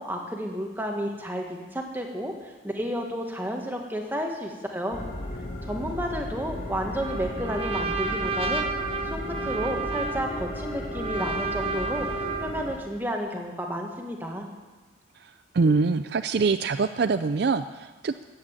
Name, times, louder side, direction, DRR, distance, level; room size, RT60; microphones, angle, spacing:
voice 1, 0.0-5.0 5.6-8.7 9.0-12.1 12.4-14.5, equal, 10° right, 1 dB, 1.6 m, -31 dB
sound 1, 4.9-12.7, left 1 dB, 45° left, 2.5 m, -35 dB
Trumpet, 7.0-12.7, right 4 dB, 30° right, 0.9 m, -31 dB
voice 2, 15.5-18.2, right 4 dB, 55° right, 10 dB, 0.4 m, -24 dB
14.0 x 8.7 x 8.8 m, 1.3 s
head